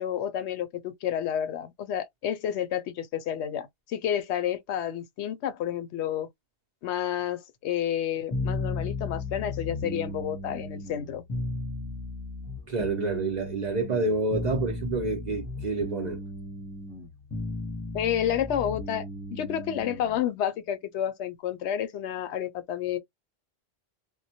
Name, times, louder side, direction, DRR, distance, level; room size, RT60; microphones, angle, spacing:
voice 1, 0.0-6.3 6.8-11.2 17.9-19.0 19.3-23.0, left 10 dB, 85° left, 0.9 m, -30 dB
sound 1, 8.3-20.2, left 2 dB, 25° left, 0.7 m, -35 dB
voice 2, 12.7-16.2, right 3 dB, 50° right, 0.6 m, -28 dB
2.2 x 2.1 x 2.7 m
omnidirectional pair, 1.1 m